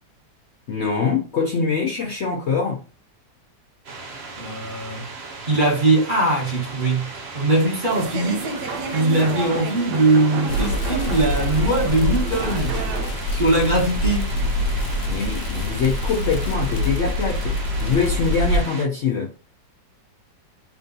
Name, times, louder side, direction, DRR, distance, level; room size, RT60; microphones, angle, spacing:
voice 1, 0.7-2.8 15.1-19.3, left 5 dB, 90° left, 0.6 m, -24 dB
sound 1, 3.8-18.8, right 3 dB, 55° right, 0.7 m, -36 dB
voice 2, 4.4-5.0 5.4-7.1 7.3-8.5 8.9-12.8 13.3-14.3, right 2 dB, 30° right, 1.2 m, -21 dB
sound 2, 7.9-13.1, right 3 dB, 70° right, 1.3 m, -31 dB
sound 3, 10.5-18.6, left 1 dB, 70° left, 1.2 m, -25 dB
3.5 x 2.7 x 3.8 m
omnidirectional pair, 2.0 m